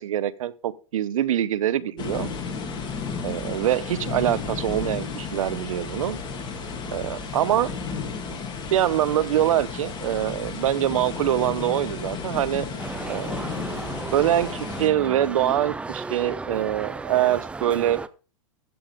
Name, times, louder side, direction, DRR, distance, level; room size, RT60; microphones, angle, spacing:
voice 1, 0.0-2.3 3.2-6.2 6.9-7.7 8.7-12.7 13.1-13.4 14.1-18.0, right 11 dB, 75° right, 17 dB, 0.9 m, -24 dB
sound 1, 2.0-14.9, left 5 dB, 25° left, 2.7 m, -33 dB
sound 2, 12.8-18.1, right 3 dB, 5° right, 0.4 m, -35 dB
15.0 x 7.2 x 3.6 m, 0.36 s
hypercardioid pair, 130°, 17 cm